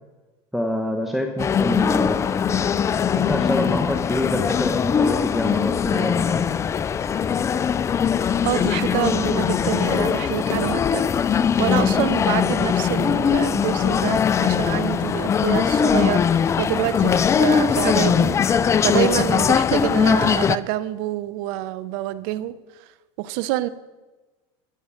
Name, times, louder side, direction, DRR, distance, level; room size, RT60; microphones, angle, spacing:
voice 1, 0.5-2.3 3.1-6.4, equal, ahead, 1.0 m, -26 dB
sound 1, 1.4-20.6, left 7 dB, 20° left, 0.4 m, -21 dB
voice 2, 8.4-22.6 23.2-23.7, right 14 dB, 60° right, 0.8 m, -27 dB
16.0 x 6.4 x 7.2 m
supercardioid pair, 125°, 15 cm